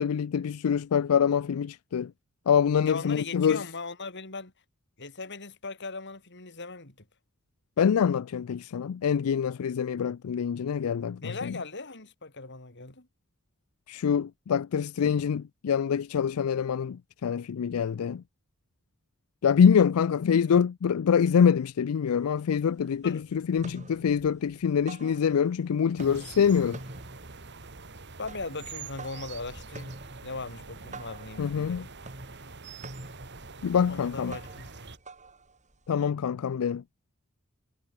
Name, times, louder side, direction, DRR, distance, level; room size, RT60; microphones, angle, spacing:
voice 1, 0.0-2.1 2.5-3.6 7.8-11.6 13.9-18.2 19.4-26.8 31.4-31.9 33.6-34.3 35.9-36.8, left 7 dB, 90° left, 0.4 m, -25 dB
voice 2, 2.8-4.5 5.0-7.0 11.2-13.1 23.0-23.2 28.2-29.9 30.2-31.9 33.9-34.7, left 3 dB, 55° left, 4.0 m, -39 dB
sound 1, 22.1-22.2 22.5-23.1 23.4-25.6 25.9-36.0, right 2 dB, 35° right, 6.9 m, -47 dB
sound 2, 26.0-35.0, right 4 dB, 55° right, 2.7 m, -45 dB
head